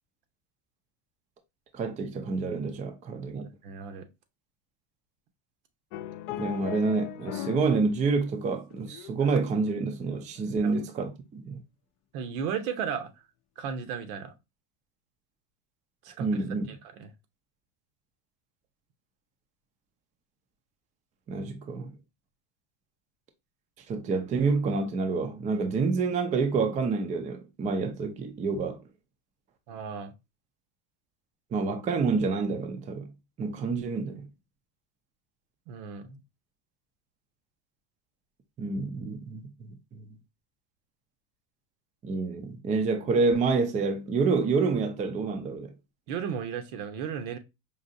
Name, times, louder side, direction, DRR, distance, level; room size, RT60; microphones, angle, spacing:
voice 1, 1.7-3.5 6.4-11.6 16.2-16.7 21.3-21.9 23.9-28.8 31.5-33.1 33.4-34.3 38.6-40.0 42.0-45.7, right 4 dB, 20° right, 0.4 m, -28 dB
voice 2, 3.3-4.1 10.6-10.7 12.1-13.1 13.6-14.3 16.0-16.4 16.7-17.1 29.7-30.1 35.7-36.2 46.1-47.4, right 7 dB, 75° right, 1.0 m, -35 dB
sound 1, 5.9-7.8 8.1-9.7 10.2-10.4, left 12 dB, 60° left, 0.5 m, -38 dB
5.1 x 2.7 x 2.6 m
supercardioid pair, 135°, 44 cm